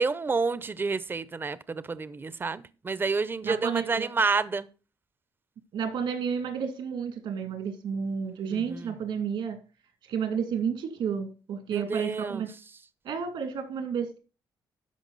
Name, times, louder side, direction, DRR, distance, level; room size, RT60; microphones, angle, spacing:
voice 1, 0.0-4.7 8.5-8.9 11.7-12.4, right 4 dB, 25° right, 0.6 m, -29 dB
voice 2, 3.4-4.1 5.7-9.6 10.0-12.5 13.0-14.2, right 7 dB, 75° right, 2.2 m, -31 dB
12.5 x 4.9 x 4.0 m
cardioid pair, 95°, 8 cm